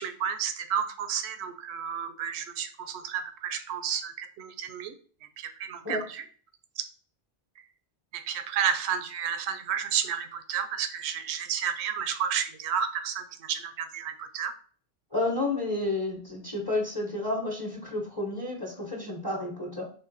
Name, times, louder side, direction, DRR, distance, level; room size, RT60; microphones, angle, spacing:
voice 1, 0.0-4.9 5.4-6.0 8.1-14.5, right 8 dB, 85° right, 10 dB, 0.8 m, -31 dB
voice 2, 15.1-19.9, left 2 dB, 20° left, -1 dB, 0.9 m, -31 dB
3.8 x 3.1 x 3.9 m, 0.43 s
omnidirectional pair, 1.1 m